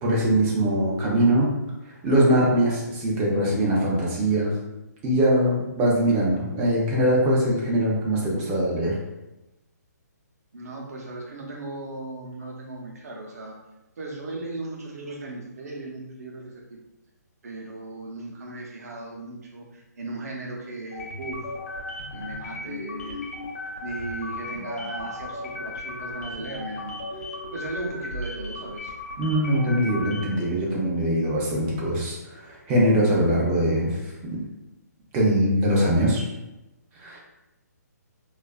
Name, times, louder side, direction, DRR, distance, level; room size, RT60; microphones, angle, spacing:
voice 1, 0.0-1.5 2.0-4.5 5.0-9.0 29.2-34.0 34.3-34.4 35.1-36.2 37.0-37.2, right 1 dB, 15° right, -4 dB, 0.4 m, -22 dB
voice 2, 10.5-13.6 14.0-16.8 17.4-21.4 22.1-23.3 23.8-28.9, right 2 dB, 60° right, -1 dB, 0.7 m, -37 dB
sound 1, 20.9-30.5, left 2 dB, 55° left, 0.6 m, -36 dB
2.5 x 2.3 x 2.2 m, 0.99 s
hypercardioid pair, 160°, 9 cm